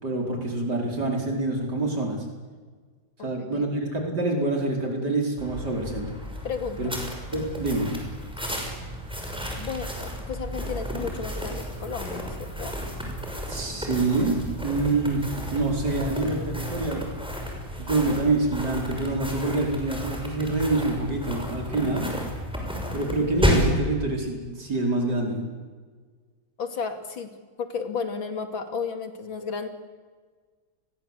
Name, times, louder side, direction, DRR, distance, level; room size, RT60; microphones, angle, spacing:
voice 1, 0.0-2.2 3.2-6.1 6.8-6.9 7.3-7.9 13.5-17.0 17.8-22.1 22.9-25.4, right 2 dB, 55° right, 1 dB, 5.6 m, -26 dB
voice 2, 3.2-3.7 6.4-7.0 9.5-12.7 26.6-27.3 27.6-29.7, left 5 dB, 80° left, 7 dB, 3.3 m, -33 dB
sound 1, 5.4-23.8, equal, ahead, 6.2 m, -32 dB
29.5 x 22.0 x 8.3 m, 1.5 s
omnidirectional pair, 2.1 m